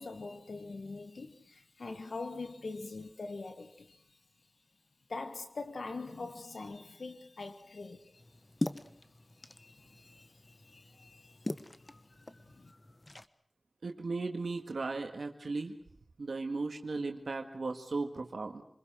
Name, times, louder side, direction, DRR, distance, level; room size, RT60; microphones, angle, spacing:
voice 1, 0.0-4.0 5.1-8.2 9.4-11.4 12.4-12.7, left 3 dB, 80° left, 1.6 m, -43 dB
sound 1, 8.1-13.3, left 1 dB, 30° left, 1.2 m, -42 dB
voice 2, 13.8-15.7 16.2-18.6, right 3 dB, 80° right, 1.8 m, -36 dB
28.0 x 21.0 x 6.3 m
wide cardioid pair, 55°, 0 cm